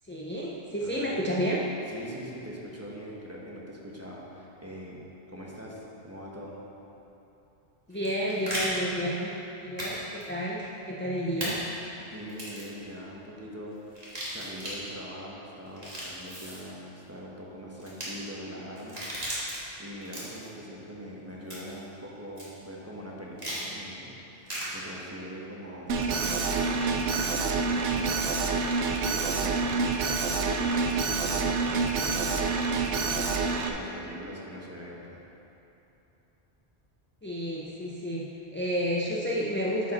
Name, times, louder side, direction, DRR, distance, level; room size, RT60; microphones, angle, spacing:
voice 1, 0.0-1.6 7.9-9.3 9.6-11.6 37.2-39.9, equal, 20° left, -5 dB, 0.3 m, -31 dB
voice 2, 0.8-1.2 1.9-5.0 5.3-6.6 12.0-19.4 19.8-33.0 33.7-35.2, equal, 15° right, -5 dB, 1.1 m, -42 dB
sound 1, 7.9-8.7 9.8-10.0 10.2-10.3 11.4-11.5 12.3-12.7 13.9-14.8 15.7-16.6 17.8-18.1 18.8-19.6 20.0-20.5 21.5-21.8 22.4-22.5 23.4-23.6 24.5-24.7 26.2-26.6, equal, 35° right, 1.9 m, -36 dB
Alarm, 25.9-33.7, right 4 dB, 85° right, 1.0 m, -27 dB
10.5 x 5.1 x 4.2 m, 3.0 s
omnidirectional pair, 1.1 m